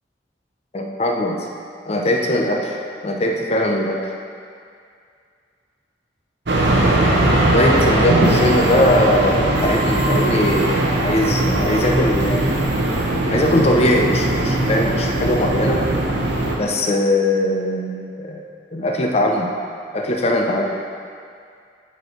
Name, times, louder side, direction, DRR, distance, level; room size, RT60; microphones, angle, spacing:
voice 1, 0.7-1.5 1.9-2.7 3.0-4.0 7.4-12.6 13.3-15.9 16.5-18.4 18.7-19.5 19.9-20.8, left 1 dB, 35° left, 1 dB, 0.7 m, -20 dB
sound 1, 6.5-16.6, right 1 dB, 70° right, 0.9 m, -19 dB
9.2 x 4.4 x 4.4 m, 2.3 s
head